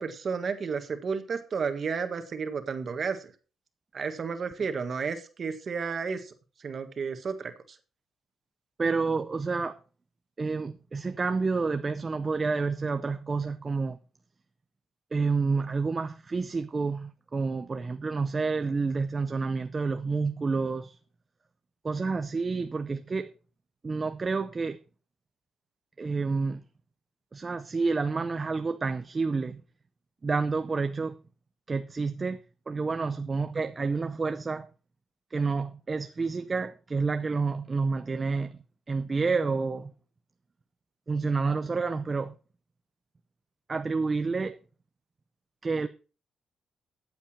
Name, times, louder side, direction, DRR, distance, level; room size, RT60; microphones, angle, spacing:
voice 1, 0.0-3.2 3.9-6.2 6.6-7.5, right 5 dB, 40° right, 1.5 m, -32 dB
voice 2, 8.8-9.8 10.4-14.0 15.1-21.0 21.8-23.3 23.8-24.8 26.0-26.6 27.3-29.6 30.2-31.2 31.7-32.4 32.7-34.7 35.3-38.6 38.9-39.9 41.1-42.3 43.7-44.6 45.6-45.9, right 4 dB, 25° right, 0.6 m, -29 dB
14.0 x 8.2 x 4.3 m
cardioid pair, 160°, 0 cm